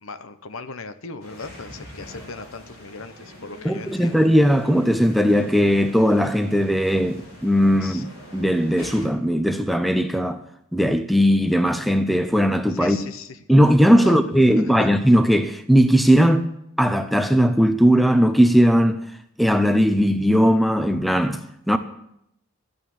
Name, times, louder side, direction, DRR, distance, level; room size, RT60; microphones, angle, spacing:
voice 1, 0.0-4.2 7.8-8.0 12.7-13.4 14.0-14.9, left 3 dB, 65° left, 0.9 m, -37 dB
sound 1, 1.2-9.0, left 1 dB, 85° left, 4.2 m, -44 dB
voice 2, 3.6-8.1 8.3-10.4 10.7-13.0 13.5-16.5 16.8-19.0 19.4-21.8, equal, ahead, 0.6 m, -18 dB
13.5 x 8.8 x 7.2 m
head